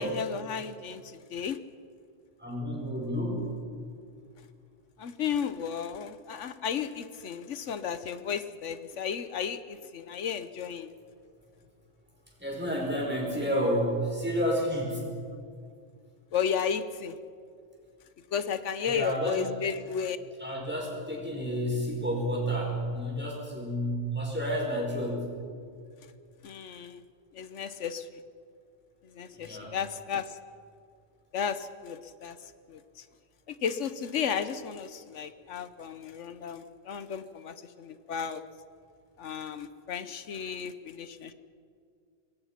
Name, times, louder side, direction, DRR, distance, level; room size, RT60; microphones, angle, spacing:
voice 1, 0.0-1.6 5.0-10.9 16.3-17.2 18.3-20.2 26.4-27.0 27.3-28.2 29.0-30.4 31.3-33.0 33.5-38.4 39.2-41.3, left 7 dB, 85° left, 11 dB, 1.2 m, -34 dB
voice 2, 2.4-3.5 12.4-15.0 18.8-19.4 20.4-25.3 29.3-29.7, equal, 10° right, -2 dB, 6.2 m, -30 dB
25.5 x 22.5 x 5.8 m, 2.2 s
omnidirectional pair, 1.2 m